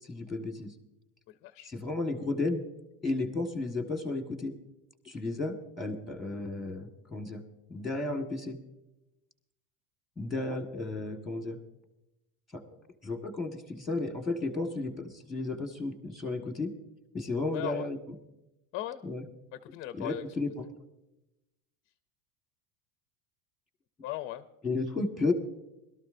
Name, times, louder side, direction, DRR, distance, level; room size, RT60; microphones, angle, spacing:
voice 1, 0.0-0.7 1.7-2.6 3.0-4.5 5.0-7.4 7.7-8.6 10.2-11.6 12.5-12.6 13.0-16.7 17.1-18.2 19.0-19.2 19.9-20.5 24.6-25.3, left 2 dB, ahead, 4 dB, 1.4 m, -33 dB
voice 2, 1.3-1.7 17.5-17.9 18.7-19.0 19.5-20.2 24.0-24.5, left 14 dB, 30° left, 11 dB, 0.4 m, -38 dB
22.0 x 13.0 x 2.6 m, 0.92 s
supercardioid pair, 150°, 44 cm